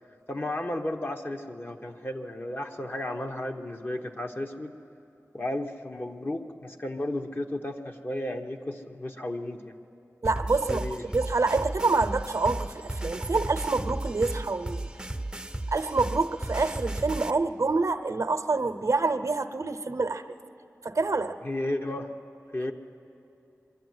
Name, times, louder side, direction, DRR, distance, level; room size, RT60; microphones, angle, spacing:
voice 1, 0.3-4.7 5.3-9.7 10.7-11.0 21.4-22.1 22.5-22.7, left 1 dB, 40° left, 3 dB, 1.2 m, -33 dB
sound 1, 10.2-17.3, right 1 dB, 15° right, 0.7 m, -34 dB
voice 2, 10.2-14.9 15.7-20.2 20.8-21.4, right 3 dB, 70° right, 9 dB, 0.8 m, -27 dB
23.5 x 12.5 x 9.5 m, 2.8 s
wide cardioid pair, 55°, 5 cm